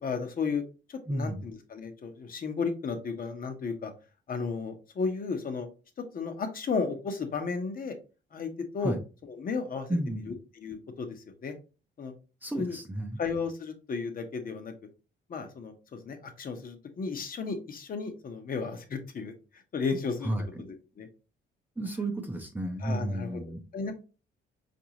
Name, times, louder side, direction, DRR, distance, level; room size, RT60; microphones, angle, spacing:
voice 1, 0.0-0.6 0.9-3.9 4.3-5.7 6.1-7.9 8.3-9.0 9.2-9.9 10.2-11.2 11.4-11.5 12.0-12.1 12.5-12.8 13.2-14.7 15.3-19.3 19.7-20.3 20.6-21.1 22.8-23.4 23.7-23.9, left 5 dB, 45° left, 6 dB, 0.9 m, -34 dB
voice 2, 1.1-1.4 8.8-9.0 9.9-10.2 12.4-13.2 20.2-20.4 21.8-23.6, right 1 dB, 10° right, 3 dB, 0.6 m, -32 dB
4.6 x 2.6 x 2.9 m, 0.33 s
cardioid pair, 90°, 20 cm